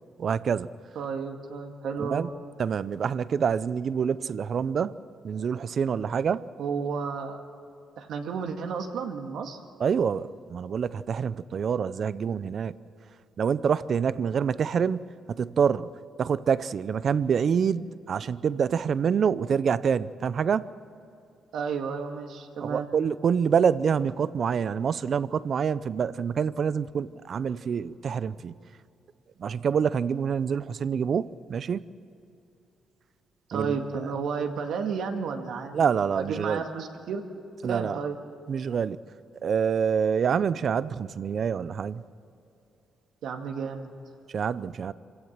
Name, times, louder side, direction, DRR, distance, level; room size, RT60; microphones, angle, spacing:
voice 1, 0.2-0.7 2.0-2.3 2.6-4.9 5.2-6.5 9.8-12.7 13.4-15.9 16.2-20.7 22.6-28.5 29.4-31.9 33.5-33.8 35.7-36.6 37.6-38.0 38.5-39.0 39.4-42.0 44.3-44.9, right 7 dB, 55° right, 17 dB, 0.6 m, -26 dB
voice 2, 1.0-2.3 6.6-7.4 8.0-9.6 21.5-22.9 33.5-35.8 36.2-37.2 37.7-38.2 43.2-43.9, right 5 dB, 75° right, 4 dB, 2.0 m, -32 dB
26.0 x 16.0 x 7.5 m, 2.7 s
cardioid pair, 90°, 0 cm